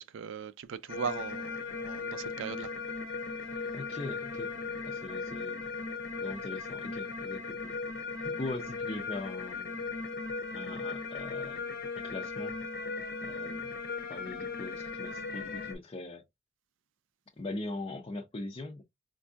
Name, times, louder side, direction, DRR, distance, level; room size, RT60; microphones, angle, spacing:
voice 1, 0.0-2.7, right 6 dB, 65° right, 0.4 m, -39 dB
sound 1, 0.9-15.7, left 4 dB, 55° left, 0.7 m, -37 dB
voice 2, 3.7-5.6 6.2-7.8 8.2-9.8 10.5-12.6 13.2-13.8 14.1-16.2 17.4-18.8, left 2 dB, 30° left, 0.5 m, -41 dB
4.4 x 2.6 x 2.2 m
head